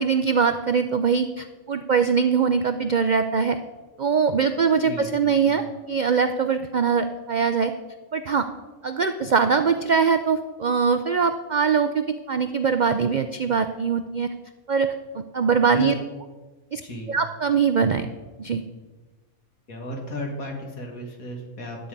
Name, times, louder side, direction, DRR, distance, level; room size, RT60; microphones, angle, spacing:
voice 1, 0.0-3.6 4.0-7.7 8.1-8.5 8.8-14.3 14.7-15.9 16.7-16.8 17.1-18.1 18.4-18.6, right 6 dB, 70° right, 9 dB, 0.4 m, -22 dB
voice 2, 4.8-5.6 15.7-15.9 16.8-17.2 19.7-21.9, left 1 dB, 90° left, 1 dB, 2.5 m, -35 dB
12.0 x 8.5 x 5.2 m, 1.2 s
omnidirectional pair, 1.4 m